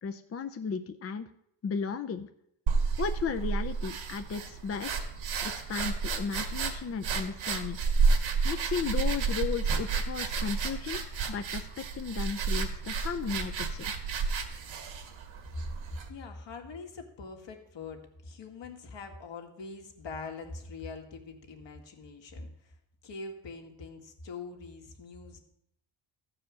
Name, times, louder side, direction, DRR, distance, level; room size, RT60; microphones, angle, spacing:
voice 1, 0.0-1.3 1.6-2.3 3.0-5.0 5.4-7.8 8.4-11.0 11.3-13.9, left 6 dB, 30° left, 8 dB, 0.5 m, -35 dB
sound 1, 2.7-16.1, right 5 dB, 70° right, 1.8 m, -31 dB
voice 2, 16.1-22.5 23.0-25.4, left 4 dB, 65° left, 4 dB, 2.0 m, -43 dB
14.0 x 4.9 x 7.4 m, 0.76 s
cardioid pair, 105°, 47 cm